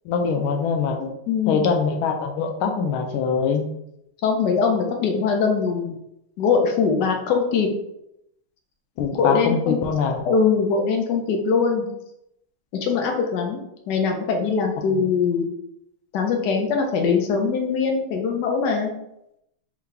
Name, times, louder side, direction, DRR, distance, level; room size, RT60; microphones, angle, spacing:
voice 1, 0.1-1.0 1.5-3.7 9.0-10.2 14.9-15.0, left 5 dB, 80° left, 4 dB, 1.4 m, -23 dB
voice 2, 1.0-1.7 4.2-5.9 6.4-7.7 9.1-9.8 10.3-11.9 12.7-13.6 13.9-15.5 16.1-18.9, left 5 dB, 65° left, 2 dB, 1.2 m, -22 dB
3.7 x 3.3 x 3.3 m, 0.80 s
omnidirectional pair, 2.4 m